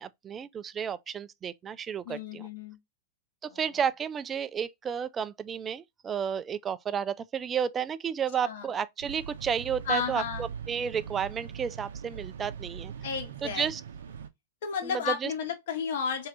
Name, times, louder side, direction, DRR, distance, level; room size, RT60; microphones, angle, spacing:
voice 1, 0.0-2.5 3.4-12.9 13.4-13.8 14.8-15.3, right 7 dB, 25° right, 0.4 m, -32 dB
voice 2, 2.0-2.8 3.5-3.6 8.4-8.7 9.9-10.5 13.0-13.7 14.6-16.3, left 6 dB, 65° left, 1.2 m, -32 dB
sound 1, 9.0-14.3, right 7 dB, 75° right, 0.6 m, -41 dB
3.3 x 2.7 x 3.7 m
hypercardioid pair, 105°, 0 cm